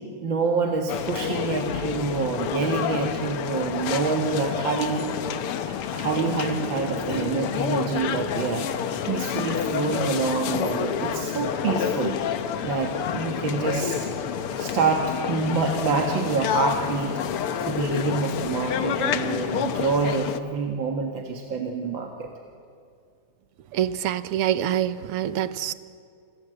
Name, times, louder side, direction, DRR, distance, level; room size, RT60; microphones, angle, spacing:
voice 1, 0.2-5.1 5.7-12.2 12.6-14.0 14.6-22.3, right 4 dB, 60° right, 2 dB, 2.5 m, -27 dB
sound 1, 0.9-20.4, left 8 dB, 80° left, 2.0 m, -29 dB
voice 2, 23.7-25.7, right 11 dB, 90° right, 14 dB, 1.9 m, -25 dB
29.0 x 25.5 x 7.8 m, 2.3 s
omnidirectional pair, 2.4 m